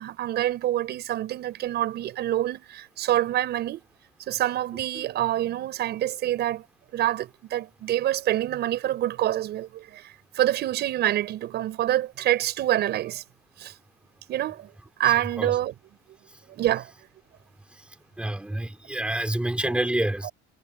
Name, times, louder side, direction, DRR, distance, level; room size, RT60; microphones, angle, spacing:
voice 1, 0.0-3.8 4.3-6.6 6.9-13.2 13.6-13.7 14.3-14.7 15.0-15.8 16.5-16.9 19.6-19.7, right 13 dB, 55° right, 7.2 m, -26 dB
voice 2, 15.0-15.5 18.2-20.3, right 1 dB, 5° right, 6.0 m, -28 dB
cardioid pair, 160°, 20 cm